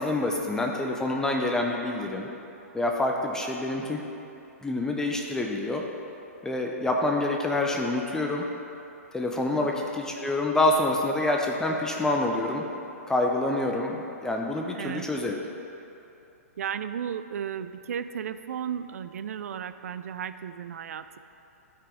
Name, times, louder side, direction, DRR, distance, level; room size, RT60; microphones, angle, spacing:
voice 1, 0.0-2.3 2.7-4.0 4.6-5.8 6.4-8.4 9.1-12.6 13.1-15.5, left 2 dB, 5° left, 0 dB, 0.6 m, -27 dB
voice 2, 14.7-15.1 16.6-21.2, right 8 dB, 70° right, 12 dB, 0.4 m, -34 dB
12.5 x 4.9 x 3.7 m, 2.9 s
hypercardioid pair, 125°, 8 cm